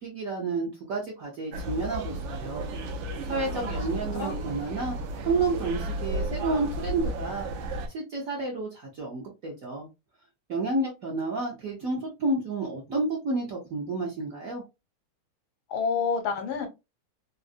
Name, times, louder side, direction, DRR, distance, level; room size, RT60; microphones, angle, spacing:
voice 1, 0.0-2.7 3.3-5.0 5.2-7.5 7.9-9.9 10.5-14.6, right 3 dB, 60° right, 0.9 m, -30 dB
sound 1, 1.5-7.9, right 1 dB, 75° right, 1.3 m, -33 dB
voice 2, 15.7-16.7, left 5 dB, 80° left, 1.5 m, -29 dB
3.8 x 2.1 x 2.5 m
omnidirectional pair, 2.3 m